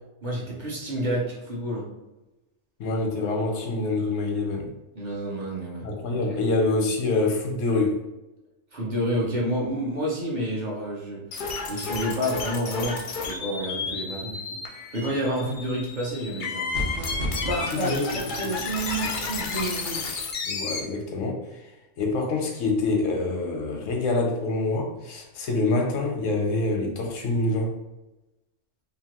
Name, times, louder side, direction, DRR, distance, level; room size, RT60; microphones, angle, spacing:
voice 1, 0.2-1.9 5.0-5.8 8.7-11.2 11.7-14.4 14.7-16.7 17.5-20.1, right 1 dB, 45° right, -4 dB, 0.7 m, -29 dB
voice 2, 2.8-4.7 5.8-8.0 17.7-18.0 20.4-21.6 22.0-27.7, left 2 dB, 90° left, 1 dB, 1.0 m, -26 dB
sound 1, 11.3-20.8, left 4 dB, 60° left, 0.5 m, -32 dB
sound 2, 16.7-17.6, equal, 80° right, 1.1 m, -30 dB
2.9 x 2.4 x 2.9 m, 1.0 s
omnidirectional pair, 1.3 m